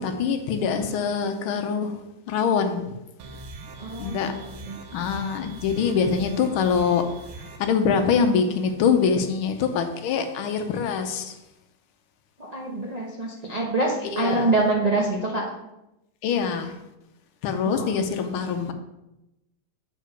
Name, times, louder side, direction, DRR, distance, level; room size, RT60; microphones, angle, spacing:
voice 1, 0.0-2.0 2.3-3.0 4.0-4.4 4.9-7.1 7.6-11.3 14.0-14.5 16.2-16.8 17.4-18.7, left 6 dB, 75° left, 7 dB, 1.5 m, -24 dB
sound 1, 3.2-7.6, right 2 dB, 75° right, 1.7 m, -41 dB
voice 2, 3.8-4.3 4.7-4.8 12.4-15.4 17.6-17.9, right 2 dB, 55° right, -3 dB, 0.4 m, -25 dB
7.9 x 4.7 x 4.5 m, 0.92 s
omnidirectional pair, 2.4 m